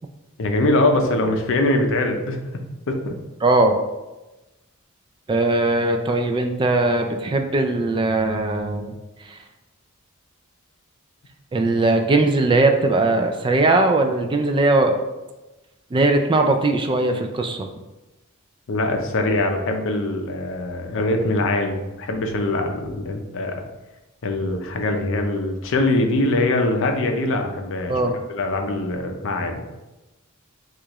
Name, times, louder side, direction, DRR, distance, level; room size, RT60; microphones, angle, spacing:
voice 1, 0.4-2.4 2.9-3.2 18.7-23.7 24.2-27.9 28.3-29.6, left 2 dB, 60° left, 4 dB, 0.6 m, -22 dB
voice 2, 3.4-3.8 5.3-9.0 9.2-9.4 11.5-15.0 15.9-17.7 27.9-28.2, right 2 dB, 20° right, 5 dB, 0.3 m, -19 dB
6.2 x 2.4 x 3.0 m, 1.1 s
head